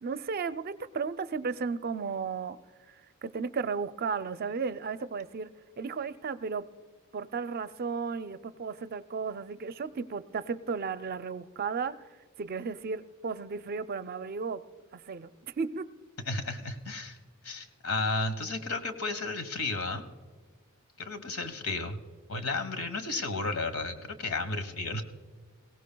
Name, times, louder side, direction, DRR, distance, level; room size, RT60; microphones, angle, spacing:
voice 1, 0.0-2.6 3.2-5.5 5.8-6.7 7.1-12.0 12.4-14.6 14.9-15.3 15.6-15.9, right 5 dB, 45° right, 12 dB, 0.4 m, -34 dB
voice 2, 16.2-17.2 17.4-20.0 21.0-22.0 22.3-25.0, left 3 dB, 90° left, 9 dB, 1.3 m, -33 dB
21.5 x 17.5 x 2.3 m, 1.4 s
head